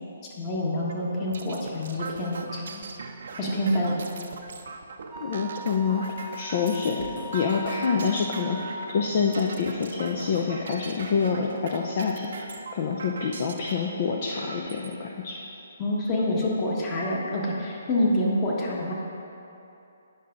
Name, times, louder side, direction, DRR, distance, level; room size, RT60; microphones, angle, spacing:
voice 1, 0.4-2.8 3.4-3.9 15.8-18.9, left 1 dB, 25° left, -4 dB, 1.4 m, -27 dB
sound 1, 0.9-13.7 14.4-15.0 15.5-15.6 15.9-16.6, right 4 dB, 60° right, 0.6 m, -41 dB
Wind instrument woodwind instrument, 5.1-9.0, left 1 dB, 10° right, 0.4 m, -40 dB
voice 2, 5.2-6.0 6.4-7.1 7.3-12.5 12.7-15.4, left 5 dB, 45° left, -1 dB, 0.6 m, -27 dB
9.3 x 5.7 x 3.9 m, 2.8 s
hypercardioid pair, 145°, 0 cm